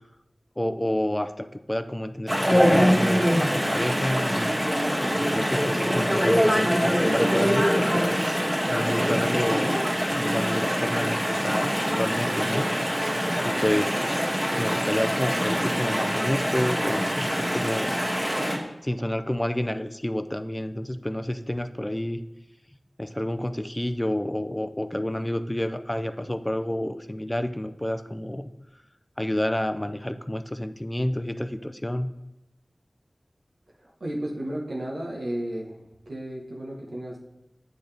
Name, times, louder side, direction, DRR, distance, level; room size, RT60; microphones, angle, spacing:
voice 1, 0.6-4.5 5.2-9.8 10.1-12.7 13.4-14.0 14.6-18.0 18.8-22.2 23.0-28.5 29.2-32.1, left 1 dB, 20° left, 10 dB, 0.4 m, -29 dB
Chatter / Stream, 2.3-18.6, equal, 20° right, 1.7 m, -24 dB
voice 2, 34.0-35.8 36.1-37.2, right 1 dB, 90° right, -3 dB, 1.2 m, -33 dB
8.6 x 3.9 x 3.4 m, 0.96 s
wide cardioid pair, 40°, 0 cm